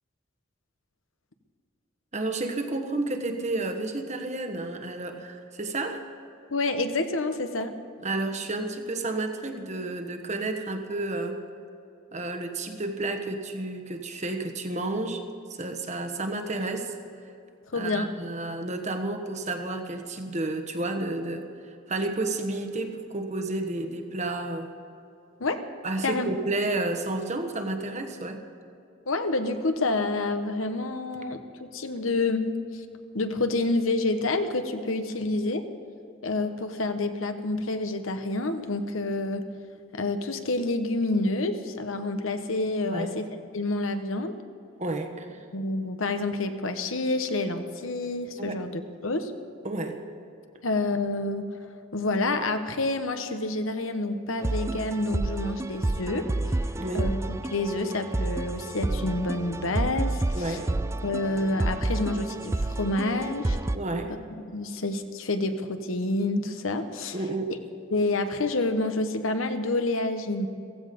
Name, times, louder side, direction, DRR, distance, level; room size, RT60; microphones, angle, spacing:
voice 1, 2.1-6.0 8.0-11.4 12.1-15.2 15.6-16.9 17.7-21.5 21.9-24.7 25.8-28.4 42.9-43.1 44.8-45.4 48.4-48.6 49.6-50.0 56.7-57.1 60.3-60.7 63.7-64.1 67.1-67.5, right 2 dB, 35° right, 5 dB, 1.3 m, -31 dB
voice 2, 6.5-7.7 17.7-18.1 25.4-25.6 26.0-26.3 29.1-32.8 33.1-35.7 36.2-39.5 39.9-43.3 43.5-44.3 45.5-49.3 50.6-51.5 51.9-56.3 56.9-60.6 61.0-63.6 64.5-67.2 67.9-70.5, left 2 dB, 75° left, 8 dB, 1.2 m, -28 dB
sound 1, 54.4-63.8, right 2 dB, 15° right, 0.3 m, -30 dB
16.0 x 15.5 x 5.3 m, 2.6 s
head